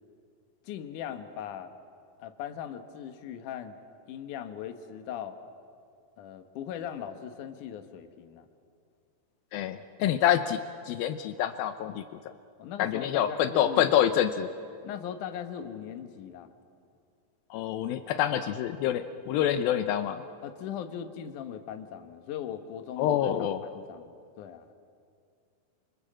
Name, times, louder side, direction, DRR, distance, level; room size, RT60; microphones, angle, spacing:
voice 1, 0.6-1.7 2.2-3.8 4.1-5.4 6.2-8.5 12.6-14.0 14.8-16.5 20.4-24.7, left 9 dB, 65° left, 8 dB, 2.5 m, -39 dB
voice 2, 9.5-10.6 10.9-12.3 12.8-14.5 17.5-20.2 23.0-23.6, left 10 dB, 80° left, 10 dB, 2.6 m, -27 dB
28.5 x 25.0 x 7.6 m, 2.3 s
omnidirectional pair, 4.2 m